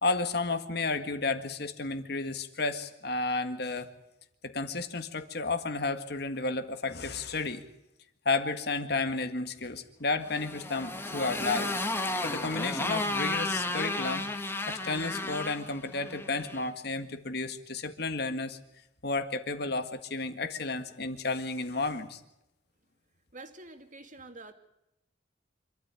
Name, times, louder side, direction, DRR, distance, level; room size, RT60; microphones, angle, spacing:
voice 1, 0.0-3.9 4.4-7.6 8.3-11.7 12.2-18.6 19.0-22.2, left 3 dB, 60° left, 9 dB, 1.9 m, -32 dB
Motorcycle, 10.2-16.7, left 2 dB, 15° left, 1.7 m, -33 dB
voice 2, 23.3-24.5, right 2 dB, 45° right, 6 dB, 2.5 m, -47 dB
26.5 x 13.0 x 9.8 m, 0.87 s
head